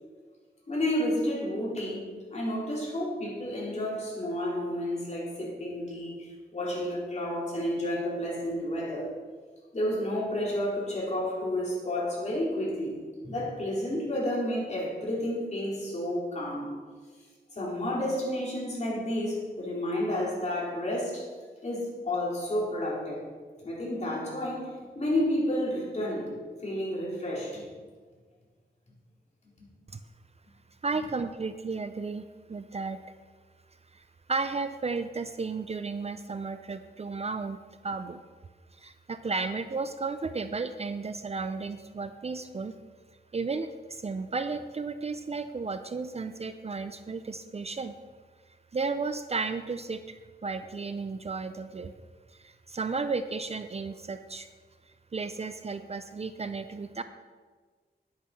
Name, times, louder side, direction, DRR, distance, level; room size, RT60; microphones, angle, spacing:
voice 1, 0.7-2.0 2.3-9.1 9.7-16.7 17.5-21.3 21.6-23.3 23.6-26.3 26.6-27.6 29.6-29.7, left 1 dB, 40° left, -5 dB, 4.1 m, -31 dB
voice 2, 30.8-32.2 32.5-33.0 33.9-34.0 34.3-38.2 38.8-42.7 43.3-48.0 48.7-51.9 52.4-54.5 55.1-57.0, right 4 dB, 35° right, 10 dB, 0.5 m, -33 dB
10.5 x 8.5 x 6.0 m, 1.5 s
wide cardioid pair, 130°, 17 cm